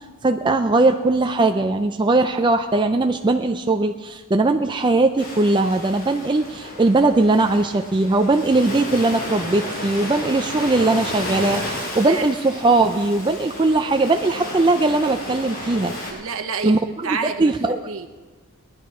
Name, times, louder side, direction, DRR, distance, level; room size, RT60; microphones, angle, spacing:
voice 1, 0.2-15.9 16.6-16.8 17.1-17.8, right 2 dB, 20° right, 6 dB, 0.4 m, -19 dB
Ocean, 5.2-16.1, left 1 dB, 40° left, 5.0 m, -32 dB
voice 2, 16.1-17.5 17.9-18.1, right 5 dB, 65° right, 7 dB, 1.1 m, -29 dB
19.5 x 10.5 x 4.8 m, 1.3 s
head